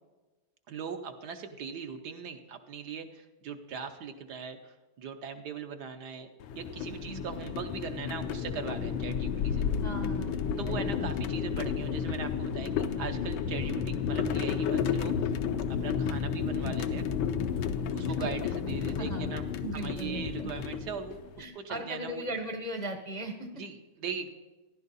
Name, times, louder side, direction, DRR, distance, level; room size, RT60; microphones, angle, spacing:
voice 1, 0.7-6.3 6.5-9.7 10.6-15.1 15.8-17.1 17.9-19.4 19.7-22.2 23.5-24.3, right 6 dB, 65° right, 7 dB, 1.2 m, -40 dB
sound 1, 6.4-21.4, left 7 dB, 80° left, 1.4 m, -32 dB
voice 2, 6.9-7.2 9.8-10.4 10.7-11.1 19.0-19.3 19.6-20.5 21.4-23.5, right 1 dB, 35° left, 4 dB, 0.7 m, -38 dB
14.5 x 11.5 x 4.1 m, 1.2 s
omnidirectional pair, 2.2 m